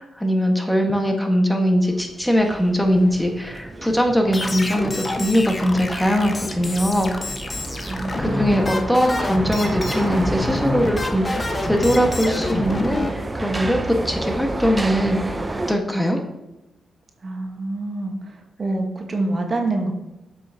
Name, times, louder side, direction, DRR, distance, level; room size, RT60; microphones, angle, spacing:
voice 1, 0.0-7.1 8.2-16.2, equal, 5° left, 3 dB, 1.3 m, -21 dB
sound 1, 1.9-15.7, right 2 dB, 25° right, 0.6 m, -31 dB
sound 2, 4.3-13.1, left 2 dB, 30° left, 1.1 m, -28 dB
voice 2, 7.8-8.9 17.2-19.9, right 2 dB, 45° right, 3 dB, 1.2 m, -27 dB
7.4 x 6.9 x 2.8 m, 0.99 s
cardioid pair, 65°, 0 cm